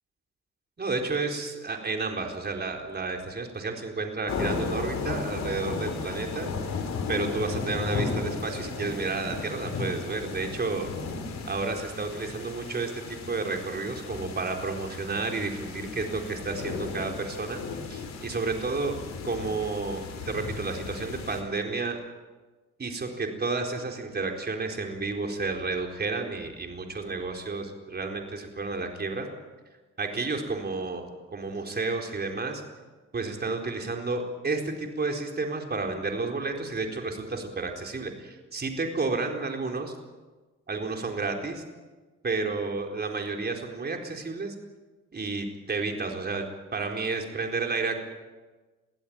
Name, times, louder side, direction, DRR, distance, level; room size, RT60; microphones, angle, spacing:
voice 1, 0.8-6.5 7.1-10.9 11.4-17.6 17.9-19.0 19.2-22.0 22.8-29.3 30.0-32.6 33.1-40.0 40.7-41.6 42.2-44.5 45.1-48.0, right 3 dB, 35° right, 3 dB, 4.3 m, -31 dB
sound 1, 4.3-21.4, left 4 dB, 65° left, 4.1 m, -35 dB
22.5 x 15.5 x 8.9 m, 1.3 s
cardioid pair, 90°, 30 cm